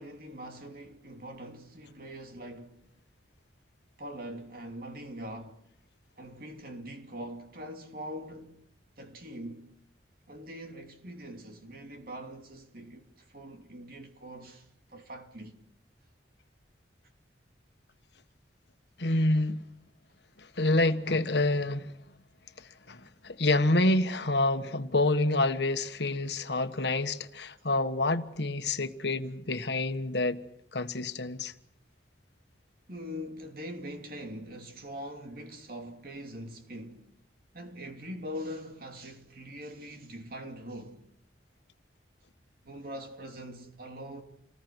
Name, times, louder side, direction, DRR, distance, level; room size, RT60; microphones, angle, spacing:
voice 1, 0.0-2.9 4.0-5.7 6.2-8.7 9.0-9.7 10.3-15.6 32.9-37.1 37.5-41.1 42.6-44.2, equal, 50° right, 2.9 m, -43 dB
voice 2, 19.0-19.6 20.4-21.9 22.6-30.4 30.7-31.5, left 2 dB, 65° left, 1.4 m, -28 dB
29.0 x 20.0 x 6.2 m
head